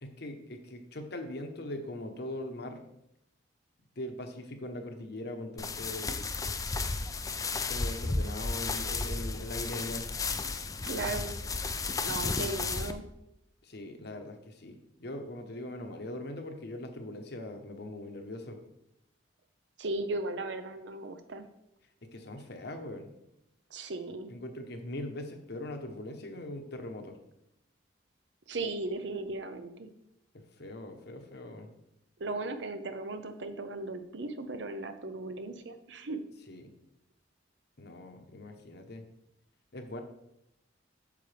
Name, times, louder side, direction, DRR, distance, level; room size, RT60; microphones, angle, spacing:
voice 1, 0.0-2.8 4.0-6.3 7.6-10.1 13.6-18.6 22.1-23.1 24.3-27.2 30.6-31.7 36.5-36.6 37.8-39.0 39.7-40.0, left 1 dB, 60° left, 5 dB, 1.0 m, -41 dB
sound 1, 5.6-12.9, left 3 dB, 20° left, 0.4 m, -33 dB
voice 2, 10.9-11.4 12.0-13.1 19.8-21.4 23.7-24.3 28.5-29.9 32.2-36.2, right 2 dB, 70° right, 9 dB, 0.8 m, -36 dB
8.6 x 6.8 x 3.4 m, 0.82 s
head